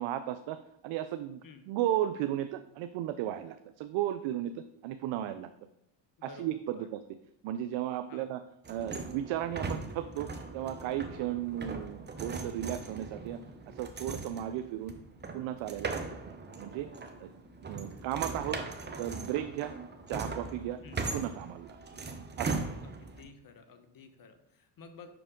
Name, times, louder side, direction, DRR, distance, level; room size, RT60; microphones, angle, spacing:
voice 1, 0.0-1.4 1.7-5.5 6.2-7.0 7.4-8.4 8.7-13.4 13.7-14.9 15.3-16.9 17.2-17.3 17.6-18.6 19.0-19.8 20.1-21.8 22.4-22.6, right 12 dB, 65° right, 10 dB, 0.5 m, -35 dB
voice 2, 6.2-6.9 8.1-8.3 20.8-21.0 22.8-25.1, left 5 dB, 45° left, 8 dB, 0.9 m, -52 dB
sound 1, 8.6-23.2, right 3 dB, 20° right, 0.8 m, -40 dB
6.0 x 4.9 x 3.6 m, 0.83 s
supercardioid pair, 80°, 50 cm